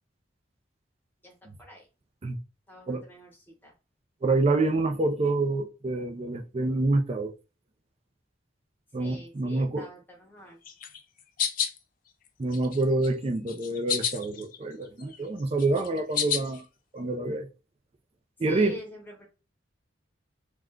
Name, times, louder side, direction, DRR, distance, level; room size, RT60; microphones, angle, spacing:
voice 1, 1.2-1.9 2.7-3.7 9.0-10.6 18.5-19.3, left 1 dB, 10° left, 0.9 m, -46 dB
voice 2, 4.2-7.3 8.9-9.9 12.4-16.7 16.9-17.5 18.4-18.8, right 2 dB, 30° right, 0.4 m, -27 dB
sound 1, 10.7-11.8 12.3-13.1 13.5-14.6 14.9-16.6, left 8 dB, 45° left, 0.4 m, -30 dB
2.4 x 2.2 x 3.5 m
head